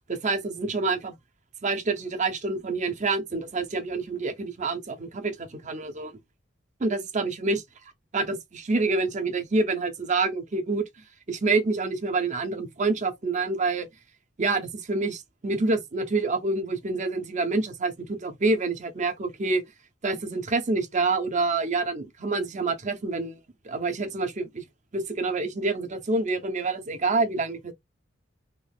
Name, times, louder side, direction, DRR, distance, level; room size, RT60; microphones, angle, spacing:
voice 1, 0.1-1.1 1.6-6.1 6.8-7.6 8.1-10.9 11.3-13.9 14.4-19.6 20.0-23.4 23.6-24.6 24.9-27.7, right 3 dB, 40° right, 0.7 m, -27 dB
3.0 x 2.4 x 3.4 m
head